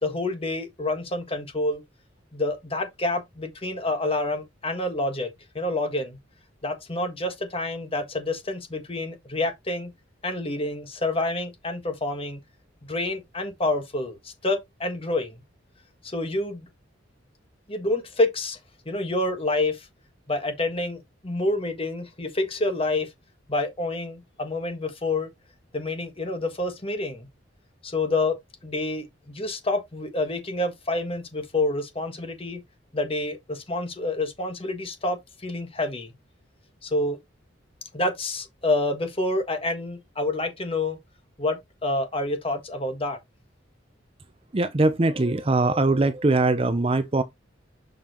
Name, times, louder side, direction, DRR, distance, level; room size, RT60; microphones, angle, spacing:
voice 1, 0.0-1.8 2.3-6.2 6.6-9.9 10.2-12.4 12.8-15.4 16.0-16.7 17.7-18.6 18.8-19.9 20.3-23.1 23.5-25.3 25.7-27.3 27.8-28.3 28.6-32.6 32.9-36.1 36.8-37.2 37.9-41.0 41.4-43.2, left 2 dB, 30° left, 1.6 m, -28 dB
voice 2, 44.5-47.2, right 2 dB, 30° right, 0.6 m, -21 dB
6.7 x 5.5 x 3.0 m
head